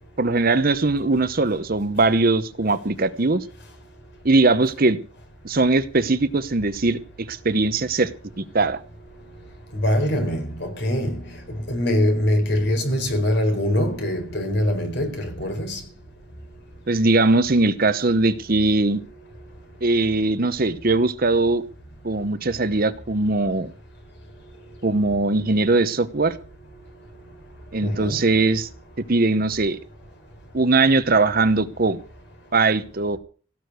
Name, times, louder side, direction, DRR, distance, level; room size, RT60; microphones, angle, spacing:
voice 1, 0.2-3.5 4.2-5.0 5.4-8.1 8.4-8.8 16.9-19.0 19.8-21.6 22.0-23.7 24.8-26.4 27.7-28.7 29.1-29.8 30.5-32.0 32.5-33.2, right 3 dB, 40° right, 0.9 m, -20 dB
voice 2, 9.7-11.2 11.5-15.8 27.8-28.2, left 1 dB, 50° left, 4.3 m, -23 dB
17.5 x 6.6 x 9.4 m
head